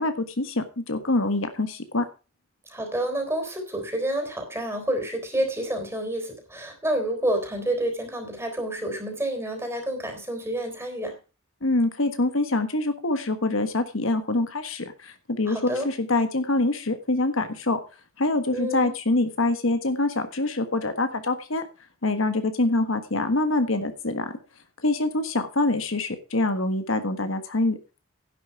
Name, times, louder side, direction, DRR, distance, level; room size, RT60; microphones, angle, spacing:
voice 1, 0.0-2.0 11.6-17.8 18.2-21.6 22.0-24.3 24.8-27.8, left 2 dB, 75° left, 9 dB, 1.5 m, -25 dB
voice 2, 2.7-11.2 15.5-15.9 18.5-18.9, right 1 dB, 15° right, 4 dB, 3.7 m, -29 dB
11.0 x 9.5 x 4.6 m, 0.32 s
head